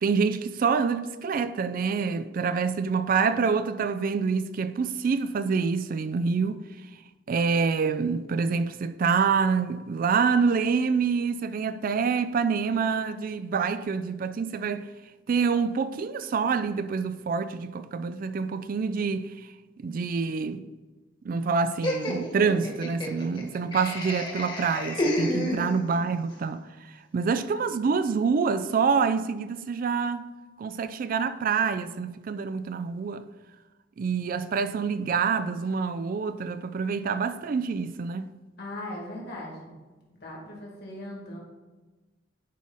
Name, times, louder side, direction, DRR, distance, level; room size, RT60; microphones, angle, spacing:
voice 1, 0.0-6.6 7.3-14.9 15.3-19.3 19.8-20.7 21.2-26.7 27.1-30.3 30.6-33.3 34.0-38.3, right 5 dB, 50° right, 0.4 m, -26 dB
Laughter, 21.8-26.1, left 1 dB, 25° left, 1.4 m, -30 dB
voice 2, 25.2-25.7 38.6-39.7 40.1-41.4, left 1 dB, 60° left, 2.4 m, -39 dB
10.5 x 4.9 x 4.1 m
head